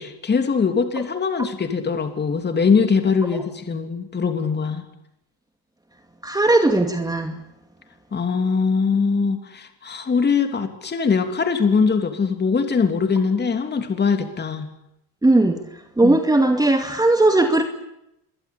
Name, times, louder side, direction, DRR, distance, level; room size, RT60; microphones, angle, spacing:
voice 1, 0.0-4.8 8.1-14.7 16.0-16.2, left 5 dB, 25° left, 3.1 m, -21 dB
voice 2, 6.2-7.3 15.2-15.6 16.0-17.6, right 2 dB, 10° right, 2.3 m, -17 dB
26.5 x 23.0 x 8.5 m
cardioid pair, 125°, 39 cm